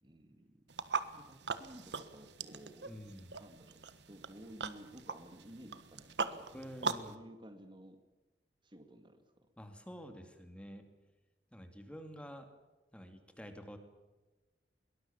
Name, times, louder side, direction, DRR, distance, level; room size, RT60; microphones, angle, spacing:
voice 1, 0.0-0.6 1.2-2.9 3.4-6.6 7.1-8.0 8.6-9.2, right 1 dB, 30° right, 7 dB, 2.3 m, -54 dB
sound 1, 0.7-7.2, right 5 dB, 80° right, 1.4 m, -41 dB
voice 2, 2.8-3.4 6.5-7.2 9.6-10.9 11.5-12.5 12.9-13.8, equal, 5° left, 6 dB, 2.5 m, -49 dB
22.5 x 19.5 x 7.2 m, 1.2 s
head